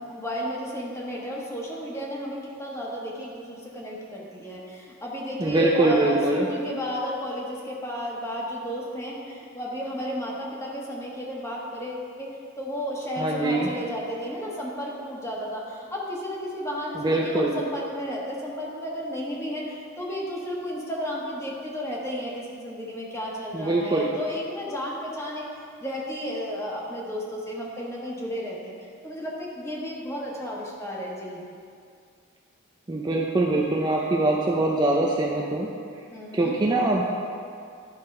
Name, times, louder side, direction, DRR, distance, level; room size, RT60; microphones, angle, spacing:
voice 1, 0.1-25.5 25.8-31.4 36.1-36.6, equal, 15° left, -4 dB, 1.3 m, -33 dB
voice 2, 5.4-6.5 13.2-13.7 17.0-17.5 23.5-24.1 32.9-35.7 36.3-37.0, right 2 dB, 20° right, -2 dB, 0.5 m, -23 dB
11.5 x 4.0 x 5.4 m, 2.3 s
head